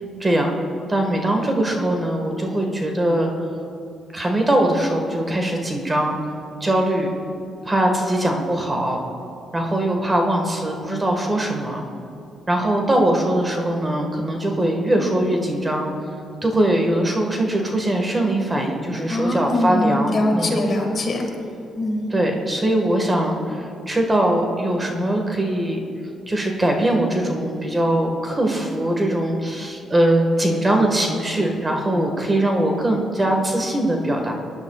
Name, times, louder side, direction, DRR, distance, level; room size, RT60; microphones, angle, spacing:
voice 1, 0.2-0.5 0.9-3.3 4.1-6.2 6.6-7.1 7.6-9.0 9.5-11.8 12.5-15.9 16.4-20.6 22.1-25.8 26.3-34.3, right 1 dB, 20° right, 2 dB, 1.6 m, -21 dB
voice 2, 19.1-21.3 21.8-22.1, left 1 dB, 45° left, 2 dB, 1.8 m, -22 dB
21.5 x 10.5 x 2.4 m, 2.6 s
cardioid pair, 90°, 0 cm